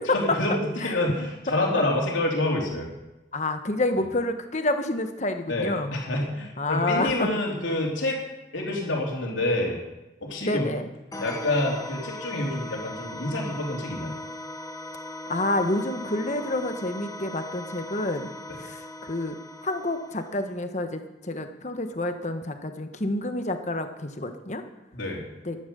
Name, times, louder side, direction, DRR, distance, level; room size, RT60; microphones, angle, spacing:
voice 1, 0.1-2.9 5.5-8.2 8.5-9.8 10.2-10.7 11.2-14.2 24.9-25.2, left 1 dB, 80° left, -1 dB, 3.6 m, -27 dB
voice 2, 3.3-6.0 6.6-7.3 10.4-10.9 15.3-18.3 18.6-19.3 19.6-24.6 25.4-25.6, left 2 dB, 35° left, 7 dB, 1.2 m, -28 dB
sound 1, 11.1-20.6, left 1 dB, 20° left, 1.2 m, -39 dB
13.0 x 11.5 x 7.0 m, 1.0 s
head